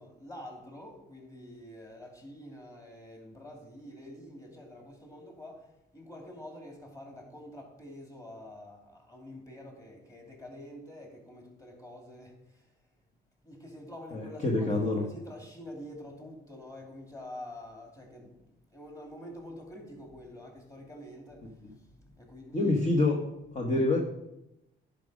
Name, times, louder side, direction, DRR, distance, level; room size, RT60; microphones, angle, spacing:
voice 1, 0.0-12.7 13.4-23.0, left 1 dB, 15° left, 2.9 m, -47 dB
voice 2, 14.1-15.0 22.5-23.2 23.5-24.0, left 2 dB, 35° left, 1.3 m, -26 dB
10.5 x 5.3 x 5.0 m
cardioid pair, 90°, 20 cm